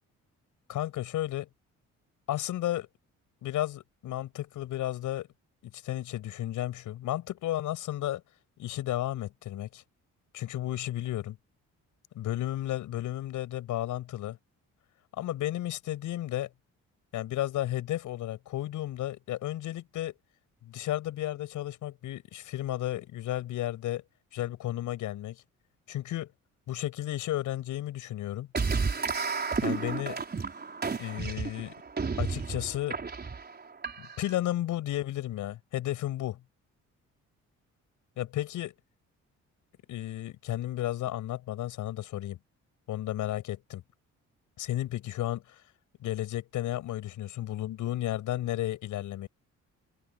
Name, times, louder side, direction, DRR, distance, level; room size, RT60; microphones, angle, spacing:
voice 1, 0.7-1.5 2.3-2.9 3.4-5.3 5.6-8.2 8.6-9.8 10.3-11.4 12.1-14.4 15.1-16.5 17.1-20.1 20.6-24.0 24.3-25.4 25.9-26.3 26.7-28.5 29.6-30.2 31.0-31.7 32.2-33.0 34.0-36.4 38.2-38.7 39.9-42.4 42.9-43.8 44.6-45.6 46.0-49.3, left 13 dB, 85° left, 8.0 m, -33 dB
sound 1, 28.5-34.4, right 5 dB, 35° right, 5.0 m, -32 dB
open air
cardioid pair, 90°, 30 cm